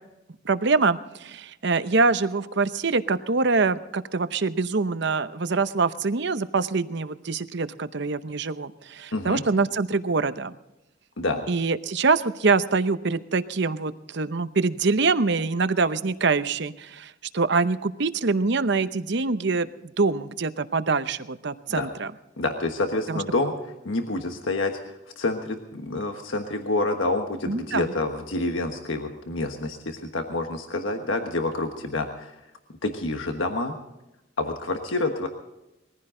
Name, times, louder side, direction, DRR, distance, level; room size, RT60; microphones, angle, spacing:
voice 1, 0.4-10.5 11.5-22.1 23.1-23.2 27.5-27.9, right 4 dB, 60° right, 12 dB, 0.8 m, -24 dB
voice 2, 9.1-9.4 11.2-11.5 21.7-21.9 22.4-23.5 23.8-32.3 32.8-33.8 34.4-35.3, left 2 dB, 80° left, 5 dB, 1.4 m, -28 dB
21.0 x 15.0 x 3.8 m, 0.94 s
head